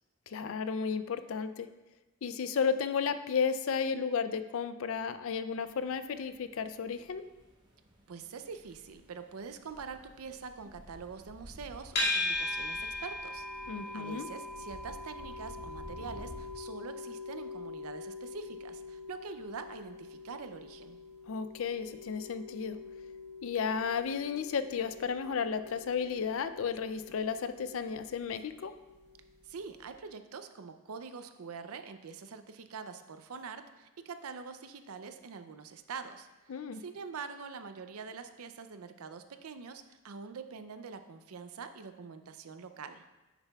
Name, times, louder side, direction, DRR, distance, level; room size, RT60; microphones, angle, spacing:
voice 1, 0.3-1.7 2.2-7.2 13.7-14.3 21.3-22.8 23.4-28.7 36.5-36.8, left 6 dB, 65° left, 11 dB, 0.4 m, -33 dB
sound 1, 5.5-16.5, equal, 20° right, 1.0 m, -53 dB
voice 2, 8.1-13.5 13.9-21.0 29.4-43.0, right 5 dB, 80° right, 9 dB, 0.5 m, -45 dB
sound 2, 12.0-29.2, left 2 dB, 45° left, 2.3 m, -41 dB
10.0 x 6.8 x 2.3 m, 1.1 s
head